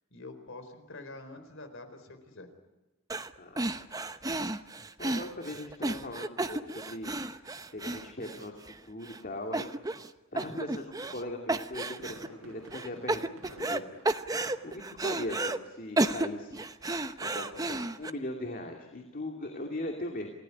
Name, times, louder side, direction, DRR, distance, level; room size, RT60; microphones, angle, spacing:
voice 1, 0.1-2.5, left 2 dB, 60° left, 8 dB, 4.1 m, -46 dB
sound 1, 3.1-3.3 3.6-8.7 9.1-9.2 9.5-10.1 10.4-11.2 11.5-12.3 12.7-13.8 14.0-15.6 16.0-18.1, right 2 dB, 15° right, 0.9 m, -32 dB
voice 2, 3.4-4.1 5.0-9.7 10.3-14.0 14.6-16.6 17.2-20.3, left 1 dB, 40° left, 3 dB, 2.6 m, -40 dB
Fireworks, 12.0-15.0 15.3-15.6 16.0-16.1, right 1 dB, 65° right, 7.2 m, -52 dB
28.5 x 17.5 x 9.8 m, 1.1 s
head